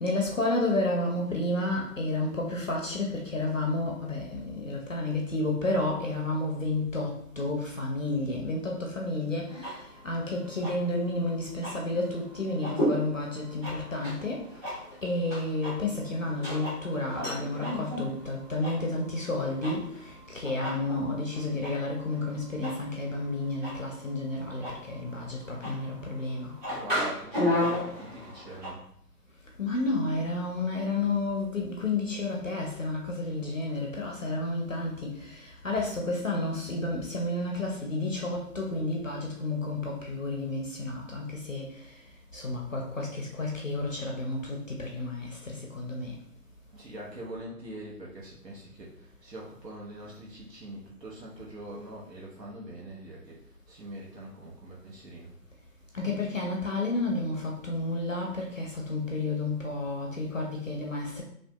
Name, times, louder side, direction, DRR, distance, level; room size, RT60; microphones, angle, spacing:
voice 1, 0.0-9.8 10.0-14.4 15.0-19.8 20.3-26.5 29.6-41.6 42.3-46.1 55.9-61.2, left 2 dB, 55° left, -1 dB, 0.5 m, -31 dB
sound 1, 9.5-28.7, left 1 dB, 30° right, 1.5 m, -35 dB
voice 2, 26.7-28.8 46.7-53.4 53.7-55.3, right 1 dB, 85° right, -4 dB, 1.0 m, -43 dB
2.8 x 2.4 x 2.2 m, 0.70 s
figure-of-eight pair, 165°, 48 cm